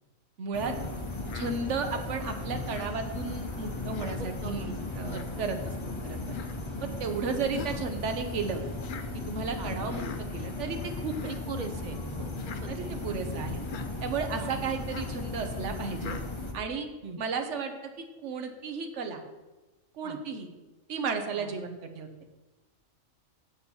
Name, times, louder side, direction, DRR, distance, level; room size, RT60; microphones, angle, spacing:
voice 1, 0.4-0.7 1.3-5.7 6.0-6.2 6.8-8.6 9.1-11.3 12.7-13.6 14.0-16.1 16.5-16.9 17.2-19.2 19.9-20.5 20.9-22.1, right 5 dB, 65° right, 5 dB, 1.2 m, -34 dB
sound 1, 0.5-16.5, left 2 dB, 25° left, 0.8 m, -36 dB
Human voice, 1.3-1.6 2.7-2.9 3.9-4.2 5.1-5.3 6.3-6.6 7.5-7.9 8.8-9.1 9.9-10.2 11.0-11.4 12.4-12.6 13.6-13.9 14.9-15.2 16.0-16.3, left 6 dB, 60° left, 0.5 m, -41 dB
voice 2, 4.2-4.8 5.1-5.4 7.3-7.4 9.6-9.7 11.2-12.9 14.4-14.5 17.0-17.2 20.0-20.2 21.3-21.5, right 3 dB, 45° right, 6 dB, 0.7 m, -41 dB
7.8 x 4.3 x 7.0 m, 1.1 s
omnidirectional pair, 1.4 m